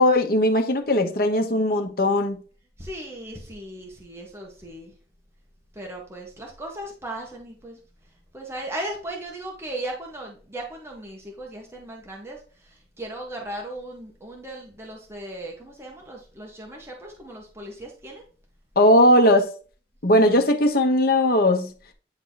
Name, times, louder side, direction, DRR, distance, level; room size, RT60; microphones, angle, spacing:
voice 1, 0.0-2.4 18.8-19.5 20.0-21.7, left 1 dB, 55° left, 1.2 m, -18 dB
voice 2, 2.8-4.9 5.7-7.8 8.3-18.2, right 1 dB, 15° right, 1.6 m, -37 dB
9.9 x 3.9 x 4.1 m
head